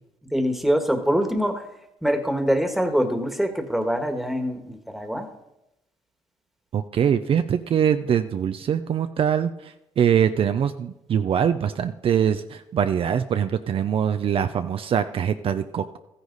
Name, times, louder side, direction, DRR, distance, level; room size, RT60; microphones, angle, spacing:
voice 1, 0.3-1.6 2.0-5.3, equal, ahead, 6 dB, 1.5 m, -24 dB
voice 2, 6.7-16.0, right 8 dB, 55° right, 9 dB, 0.5 m, -23 dB
13.5 x 9.8 x 4.0 m, 0.88 s
cardioid pair, 85°, 12 cm